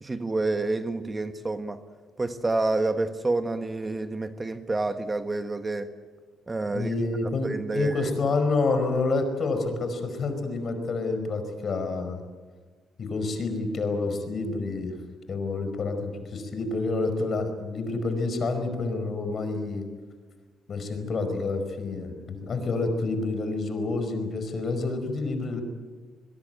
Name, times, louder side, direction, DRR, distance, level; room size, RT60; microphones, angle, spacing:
voice 1, 0.0-1.8 2.2-5.9 6.5-6.9 7.4-8.1, right 2 dB, 25° right, 9 dB, 1.4 m, -28 dB
voice 2, 6.7-12.2 13.0-14.9 15.3-19.8 20.7-25.6, left 3 dB, 50° left, 8 dB, 5.0 m, -28 dB
22.5 x 21.5 x 9.2 m, 1.4 s
cardioid pair, 90°, 0 cm